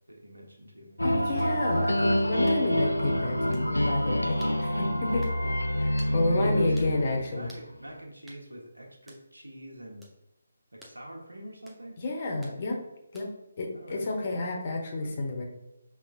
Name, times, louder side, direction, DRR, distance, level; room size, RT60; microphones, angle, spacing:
voice 1, 0.1-1.0 4.5-4.9 6.0-7.0 7.3-10.0 10.7-12.0 13.7-14.4 14.9-15.4, right 1 dB, 75° right, 0 dB, 1.1 m, -45 dB
sound 1, 1.0-7.6, equal, 80° left, 0.4 m, -27 dB
voice 2, 1.0-5.3 5.8-7.5 12.0-12.8 13.1-13.3 13.6-15.4, left 2 dB, 35° left, 1 dB, 0.9 m, -30 dB
sound 2, 1.4-1.5 2.5-2.6 3.5-3.7 4.4-4.6 5.2-5.4 6.0-6.2 6.8-6.9 7.5-7.7 8.3-8.4 9.1-9.3 10.0-10.2 10.8-11.0 11.7-11.8 12.4-12.6 13.1-13.4, right 1 dB, 5° right, 0.6 m, -53 dB
5.8 x 3.5 x 2.4 m, 0.92 s
figure-of-eight pair, 145°, 0 cm